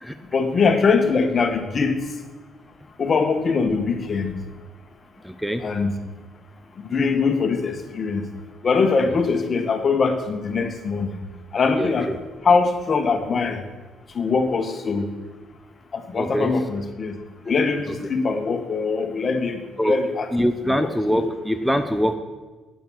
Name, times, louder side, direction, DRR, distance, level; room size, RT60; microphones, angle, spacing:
voice 1, 0.3-1.9 3.0-4.3 5.6-5.9 6.9-8.2 8.6-11.2 11.5-12.1 12.4-13.6 14.1-15.1 15.9-17.2 17.5-20.3 20.7-21.3, left 4 dB, 50° left, 7 dB, 1.5 m, -22 dB
voice 2, 5.2-5.7 11.7-12.2 16.1-16.5 17.9-18.0 19.8-20.0 20.3-22.2, equal, ahead, 9 dB, 0.9 m, -24 dB
8.8 x 8.7 x 6.4 m, 1.3 s
hypercardioid pair, 55°, 0 cm